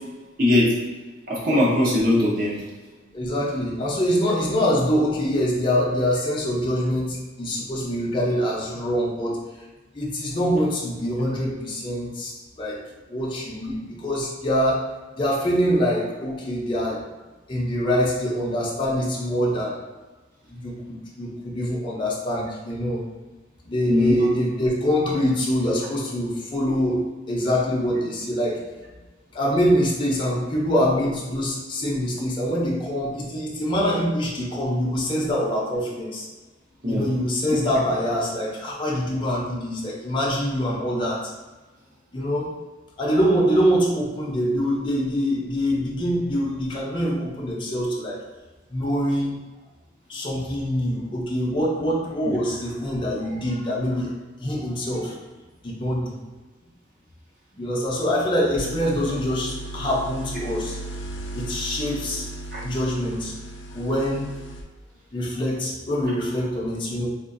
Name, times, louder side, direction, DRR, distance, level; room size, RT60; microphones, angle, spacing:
voice 1, 0.4-0.7 1.3-2.5 23.9-24.1 36.8-37.1 62.5-62.6, left 1 dB, 50° right, -6 dB, 0.7 m, -20 dB
voice 2, 3.1-9.4 9.9-12.8 13.1-14.9 15.1-17.0 17.5-19.8 20.5-23.0 23.7-28.6 29.3-36.3 36.9-41.3 42.1-42.5 43.0-48.2 48.7-49.3 50.1-54.1 54.4-55.2 55.6-56.2 57.5-60.8 61.3-62.3 62.6-63.3 63.7-64.3 65.1-67.1, equal, 25° left, -4 dB, 0.5 m, -24 dB
sound 1, 58.6-64.6, right 2 dB, 80° left, 0.5 m, -36 dB
3.5 x 2.4 x 2.5 m, 1.2 s
head